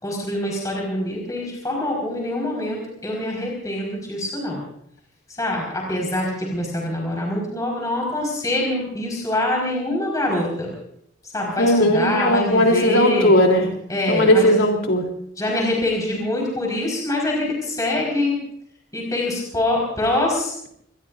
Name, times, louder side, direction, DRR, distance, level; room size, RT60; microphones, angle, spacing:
voice 1, 0.0-4.6 5.4-10.7 11.3-13.3 13.9-14.5 15.4-18.4 18.9-20.5, left 1 dB, 15° left, -2 dB, 4.9 m, -24 dB
voice 2, 11.6-13.7 14.1-15.1, equal, 75° left, 2 dB, 3.6 m, -17 dB
25.5 x 21.0 x 2.6 m, 0.69 s
head